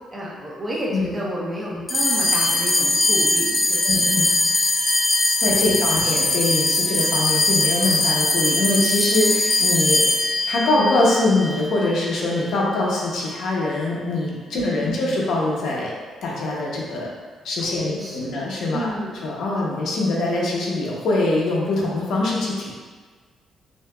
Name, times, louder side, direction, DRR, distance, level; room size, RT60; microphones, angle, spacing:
voice 1, 0.1-3.8 4.2-4.4 5.6-6.3 14.5-15.0 17.6-18.4 18.7-19.2, equal, 30° right, -4 dB, 1.0 m, -31 dB
sound 1, 1.9-12.5, left 2 dB, 20° left, 0.4 m, -21 dB
voice 2, 3.8-4.3 5.4-15.9 16.2-17.1 17.4-18.9 19.2-22.7, left 2 dB, 75° left, -3 dB, 0.9 m, -23 dB
5.7 x 2.8 x 2.4 m, 1.5 s
cardioid pair, 90°, 0 cm